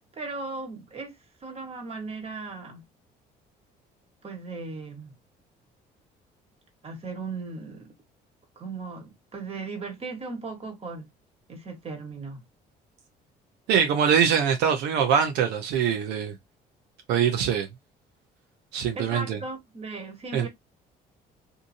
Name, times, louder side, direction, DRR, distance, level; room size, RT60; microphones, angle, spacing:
voice 1, 0.1-2.8 4.2-5.2 6.8-7.9 8.5-11.1 11.5-12.4 18.9-20.5, right 3 dB, 35° right, 1.3 m, -37 dB
voice 2, 13.7-16.3 17.1-17.7 18.7-19.4 20.3-20.5, right 7 dB, 85° right, 0.7 m, -23 dB
2.8 x 2.6 x 2.6 m
cardioid pair, 110°, 17 cm